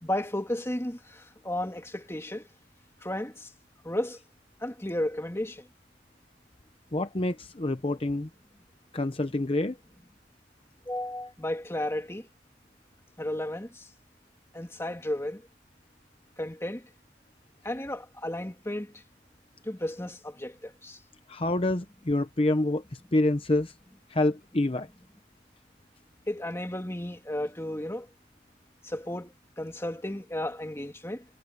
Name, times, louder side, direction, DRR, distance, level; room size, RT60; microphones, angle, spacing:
voice 1, 0.0-2.5 3.0-3.5 3.8-4.2 4.6-5.7 10.9-12.3 13.2-13.9 14.5-15.4 16.4-16.9 17.6-19.0 19.6-21.0 26.3-28.1 28.8-31.2, left 1 dB, 15° left, 2.4 m, -33 dB
voice 2, 6.9-8.3 8.9-9.8 21.3-23.7 24.1-24.9, left 2 dB, 30° left, 0.8 m, -27 dB
head